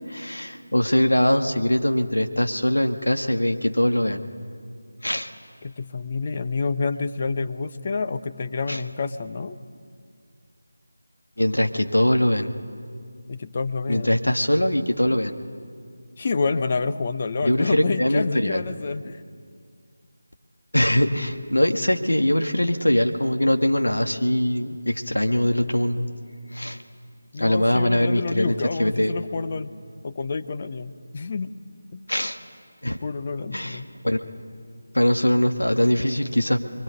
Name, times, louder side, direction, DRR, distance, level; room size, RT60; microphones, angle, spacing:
voice 1, 0.1-4.3 5.0-5.3 8.7-8.8 11.4-12.5 13.9-15.3 17.4-18.6 20.7-26.1 26.5-26.8 27.4-28.5 28.8-29.2 32.1-32.4 32.8-33.0 33.5-34.2 34.9-36.6, left 1 dB, 75° left, 5 dB, 2.0 m, -22 dB
voice 2, 5.6-9.6 13.3-14.3 16.2-19.2 27.3-29.7 30.0-31.5 31.9-32.0 33.0-33.9, left 4 dB, 30° left, 10 dB, 0.9 m, -28 dB
29.0 x 22.5 x 9.1 m, 2.1 s
figure-of-eight pair, 160°, 0 cm